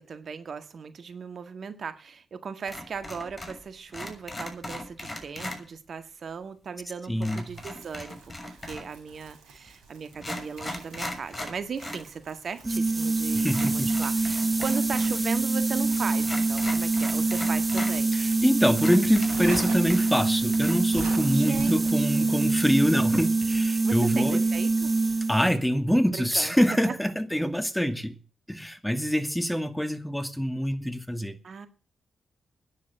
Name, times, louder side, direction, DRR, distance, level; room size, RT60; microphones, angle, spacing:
voice 1, 0.0-8.2 8.4-18.1 21.3-22.5 23.8-24.9 26.1-26.6 26.9-27.0 31.4-31.7, right 6 dB, 60° right, 1.8 m, -37 dB
sound 1, 2.7-3.6 3.9-5.6 7.2-9.0 9.7-9.8 10.1-12.1 12.4-12.5 13.5-15.2 15.4-15.5 16.2-17.9 18.4-18.5 18.8-20.3 20.5-20.7, left 1 dB, 30° left, 6.7 m, -38 dB
voice 2, 7.1-7.5 13.3-13.9 18.1-24.4 25.3-28.2 28.5-31.3, equal, 5° left, 2.3 m, -25 dB
Crumpling crinkling, 7.5-23.3, right 4 dB, 80° right, 4.2 m, -47 dB
sound 2, 12.6-25.6, right 3 dB, 25° right, 1.1 m, -25 dB
11.5 x 10.0 x 7.6 m
hypercardioid pair, 45°, 0 cm